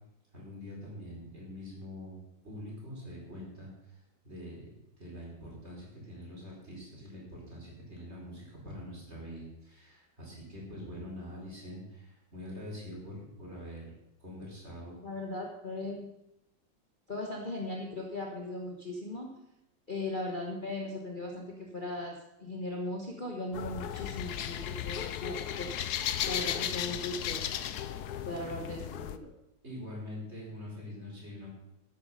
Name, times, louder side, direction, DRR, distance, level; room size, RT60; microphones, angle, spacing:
voice 1, 0.3-3.9 4.2-4.6 5.0-13.8 14.2-15.0 29.6-31.5, left 1 dB, 35° right, -3 dB, 5.0 m, -44 dB
voice 2, 15.0-16.1 17.1-19.3 19.9-25.9 26.2-27.5 28.2-29.3, left 2 dB, 30° left, -1 dB, 1.5 m, -38 dB
sound 1, 23.5-29.2, left 10 dB, 65° left, 1.1 m, -35 dB
13.0 x 9.6 x 5.5 m, 0.88 s
omnidirectional pair, 2.0 m